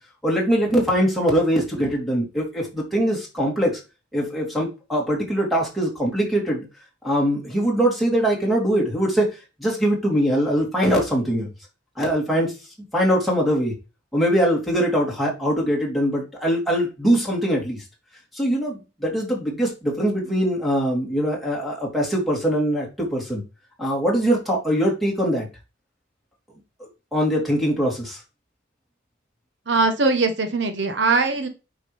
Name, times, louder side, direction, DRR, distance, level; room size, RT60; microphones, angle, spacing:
voice 1, 0.2-3.8 4.1-6.6 7.0-9.3 9.6-11.5 12.0-12.5 12.9-13.7 14.1-17.8 18.3-23.4 23.8-25.5 27.1-28.2, equal, ahead, -2 dB, 3.4 m, -22 dB
voice 2, 29.7-31.5, right 3 dB, 75° right, 7 dB, 1.2 m, -21 dB
8.5 x 6.1 x 3.5 m, 0.29 s
head